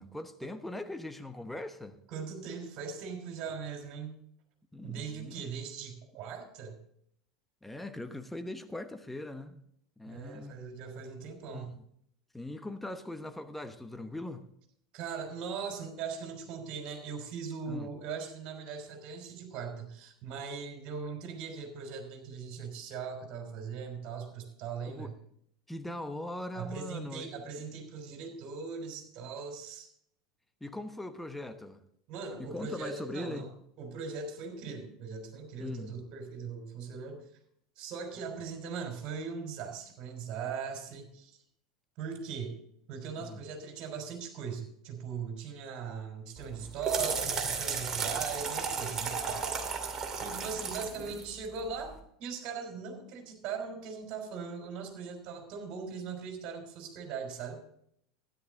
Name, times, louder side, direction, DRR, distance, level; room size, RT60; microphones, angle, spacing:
voice 1, 0.0-2.0 4.7-5.5 7.6-9.6 10.0-10.5 11.5-11.8 12.3-14.5 17.7-17.9 24.9-25.1 25.7-27.3 30.6-31.8 32.4-33.5 35.6-36.0 43.2-43.4, left 1 dB, 5° left, 1.0 m, -41 dB
voice 2, 2.1-4.2 4.8-6.8 10.1-11.7 14.9-25.1 26.5-29.9 32.1-33.5 33.8-37.3 37.8-41.4 42.0-42.6 42.9-49.4 50.2-51.9 52.2-57.6, right 6 dB, 50° right, 3.6 m, -40 dB
sound 1, 46.4-51.9, right 5 dB, 25° right, 2.4 m, -35 dB
13.0 x 10.5 x 3.8 m
hypercardioid pair, 85°, 2 cm